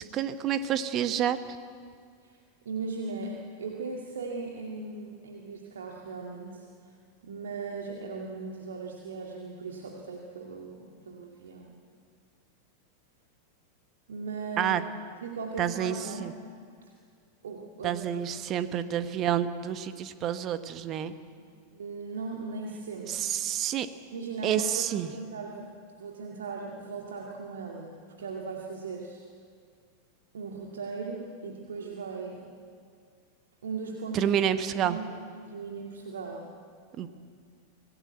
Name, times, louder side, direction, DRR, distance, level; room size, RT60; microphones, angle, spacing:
voice 1, 0.1-1.4 14.6-14.8 15.6-16.3 17.8-21.1 23.1-23.9 24.4-25.1 34.1-35.0 37.0-37.1, right 10 dB, 35° right, 11 dB, 1.2 m, -28 dB
voice 2, 2.7-6.7 7.2-11.8 14.1-14.8 15.2-16.3 17.4-18.0 21.4-21.5 21.7-23.3 24.1-25.7 26.0-29.3 30.3-32.4 33.6-36.5, right 4 dB, 65° right, 0 dB, 2.2 m, -38 dB
26.0 x 17.0 x 8.1 m, 2.1 s
figure-of-eight pair, 90°, 0 cm